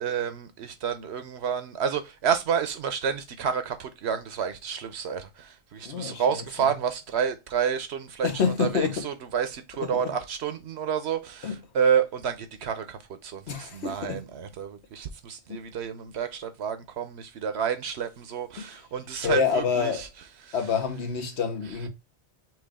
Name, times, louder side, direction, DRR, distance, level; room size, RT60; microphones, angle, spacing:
voice 1, 0.0-8.3 8.6-19.9 20.5-20.6, right 7 dB, 75° right, 1.0 m, -29 dB
voice 2, 5.8-6.8 8.2-9.1 9.7-10.1 11.4-11.6 13.5-14.2 15.5-15.6 18.6-18.8 19.2-20.1 20.5-21.9, left 6 dB, 80° left, 1.3 m, -28 dB
6.1 x 2.4 x 3.5 m
omnidirectional pair, 1.1 m